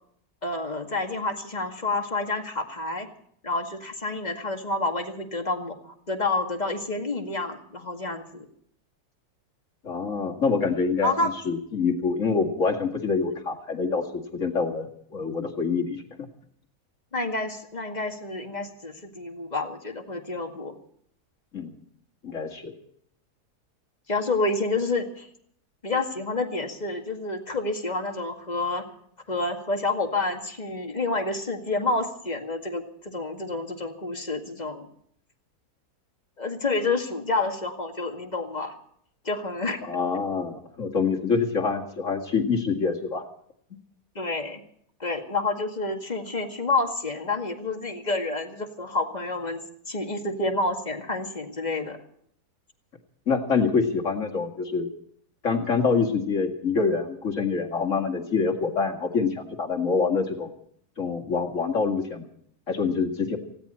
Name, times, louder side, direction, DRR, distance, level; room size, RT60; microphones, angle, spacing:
voice 1, 0.4-3.1 3.4-8.4 11.0-11.3 17.1-20.7 24.1-25.3 25.8-28.8 29.3-34.9 36.4-38.7 39.2-39.8 44.2-44.6 45.0-52.0, left 3 dB, 25° left, 3 dB, 2.1 m, -29 dB
voice 2, 9.8-16.0 21.5-21.7 22.2-22.7 39.8-43.3 53.3-54.9 55.4-60.5 61.0-62.3 62.7-63.4, left 5 dB, 50° left, 2 dB, 2.5 m, -26 dB
19.5 x 16.5 x 4.3 m, 0.65 s
omnidirectional pair, 1.7 m